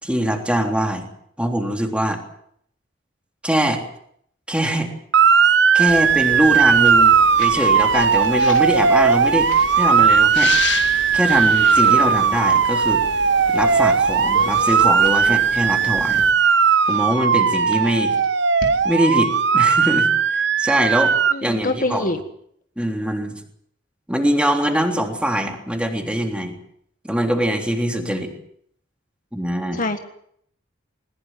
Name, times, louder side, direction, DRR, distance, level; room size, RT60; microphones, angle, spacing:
voice 1, 0.0-1.1 1.4-2.2 3.4-3.8 4.5-4.9 5.7-10.6 11.1-13.0 13.5-16.2 16.9-18.2 18.8-22.2 22.8-23.4 24.1-26.6 27.1-28.3 29.3-29.8, equal, 5° right, 3 dB, 3.4 m, -22 dB
Motor vehicle (road) / Siren, 5.1-21.3, right 6 dB, 65° right, 0.9 m, -17 dB
sound 1, 5.9-16.3, left 5 dB, 65° left, 2.0 m, -33 dB
sound 2, 7.4-7.7 8.2-10.2 10.6-11.9 12.2-12.4 12.9-13.0 13.5-13.9 14.3-16.0 16.6-18.8, left 4 dB, 90° left, 4.2 m, -42 dB
voice 2, 21.3-22.2 27.9-28.2 29.7-30.0, left 2 dB, 45° left, 7 dB, 1.6 m, -25 dB
21.0 x 20.5 x 7.6 m, 0.68 s
head